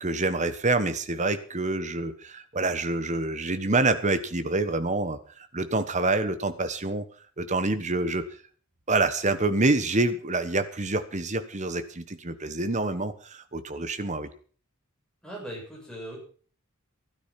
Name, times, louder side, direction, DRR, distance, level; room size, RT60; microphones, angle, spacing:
voice 1, 0.0-5.2 5.5-7.0 7.4-8.3 8.9-14.3, right 2 dB, 35° right, 11 dB, 1.3 m, -27 dB
voice 2, 15.2-16.2, right 1 dB, 5° left, -3 dB, 7.1 m, -39 dB
13.5 x 12.5 x 5.9 m, 0.43 s
head